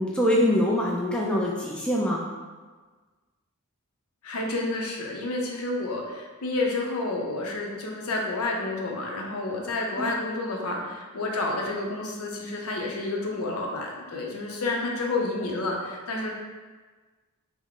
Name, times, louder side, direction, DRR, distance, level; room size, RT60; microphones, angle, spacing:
voice 1, 0.0-2.3 10.0-10.1, equal, 5° left, -4 dB, 0.3 m, -24 dB
voice 2, 4.2-16.3, left 2 dB, 75° left, -1 dB, 0.6 m, -30 dB
3.4 x 2.1 x 3.6 m, 1.4 s
head